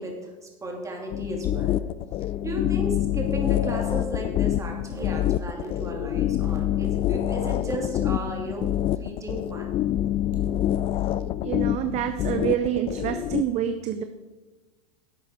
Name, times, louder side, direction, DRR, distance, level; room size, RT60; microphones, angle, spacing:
voice 1, 0.0-1.8 2.4-9.8, right 1 dB, 15° right, 1 dB, 2.7 m, -34 dB
sound 1, 1.1-13.4, left 12 dB, 30° left, 0.4 m, -26 dB
voice 2, 11.4-14.0, right 10 dB, 35° right, 9 dB, 0.7 m, -27 dB
11.0 x 8.3 x 4.4 m, 1.2 s
hypercardioid pair, 110°, 19 cm